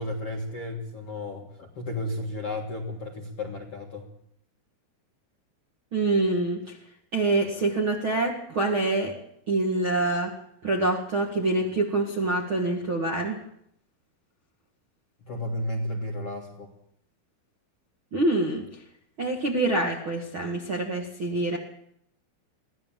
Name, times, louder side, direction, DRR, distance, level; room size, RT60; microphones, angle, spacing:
voice 1, 0.0-4.1 15.2-16.7, left 1 dB, 55° left, 0 dB, 1.7 m, -33 dB
voice 2, 5.9-6.8 7.1-9.1 9.5-10.3 10.6-13.4 18.1-18.8 19.2-21.6, right 2 dB, 50° right, -1 dB, 1.6 m, -26 dB
23.0 x 16.5 x 7.4 m, 0.73 s
omnidirectional pair, 5.6 m